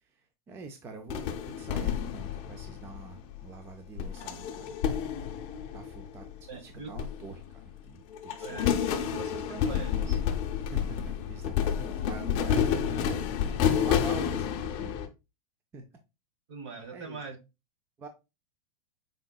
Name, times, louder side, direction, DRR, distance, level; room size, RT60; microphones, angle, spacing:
voice 1, 0.0-5.1 5.7-6.3 6.5-8.7 10.7-13.4 13.6-14.5 14.7-14.9 15.7-15.8 16.9-17.2 18.0-18.1, right 3 dB, 15° right, 0.4 m, -44 dB
sound 1, 1.1-3.4 4.0-6.5 6.9-7.8 8.1-15.1, left 8 dB, 35° left, 0.6 m, -30 dB
voice 2, 6.5-7.0 8.4-10.2 10.9-11.0 16.5-17.4, right 4 dB, 55° right, 1.1 m, -42 dB
5.0 x 3.7 x 2.2 m
supercardioid pair, 150°, 18 cm